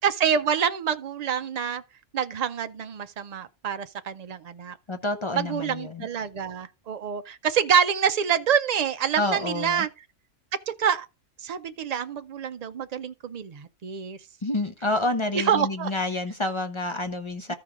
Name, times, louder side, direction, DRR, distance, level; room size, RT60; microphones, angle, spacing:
voice 1, 0.0-1.8 2.1-4.8 5.3-9.9 10.8-11.1 11.4-14.2 15.3-15.9, right 8 dB, 90° right, 0.3 m, -26 dB
voice 2, 4.9-6.1 9.2-9.9 14.4-17.5, left 2 dB, 35° left, 0.5 m, -28 dB
14.0 x 4.8 x 3.6 m
omnidirectional pair, 1.3 m